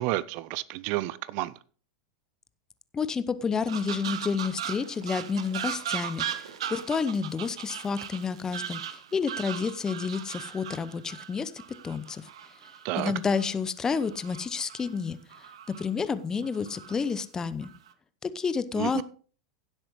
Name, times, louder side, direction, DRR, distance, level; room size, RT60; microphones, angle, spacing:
voice 1, 0.0-1.5 12.8-13.1 18.8-19.0, right 17 dB, 50° right, 0.5 m, -30 dB
voice 2, 2.9-11.5 11.8-12.3 13.0-15.2 15.7-17.7 18.2-19.0, left 5 dB, 20° left, 0.8 m, -30 dB
sound 1, 3.7-13.4 13.9-15.0 15.3-15.8 16.4-17.0 17.6-17.9, right 9 dB, 65° right, 1.0 m, -38 dB
16.5 x 7.7 x 3.1 m
figure-of-eight pair, 90°, 3 cm